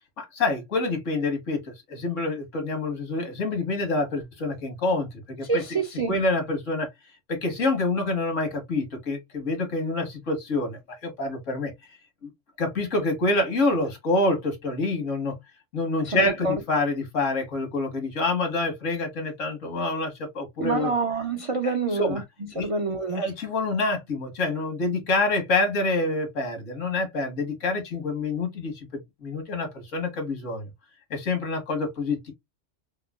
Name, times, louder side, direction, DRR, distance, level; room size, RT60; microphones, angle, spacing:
voice 1, 0.2-5.1 5.4-5.8 6.1-6.9 7.3-11.7 12.2-12.3 12.6-15.4 15.7-20.9 21.6-22.2 22.5-22.7 23.0-28.9 29.2-30.7 31.1-32.3, left 2 dB, 80° left, 1.6 m, -27 dB
voice 2, 5.5-6.1 16.1-16.5 20.6-22.2 22.6-23.2, right 4 dB, 60° right, 0.3 m, -26 dB
4.7 x 2.3 x 2.3 m
omnidirectional pair, 1.3 m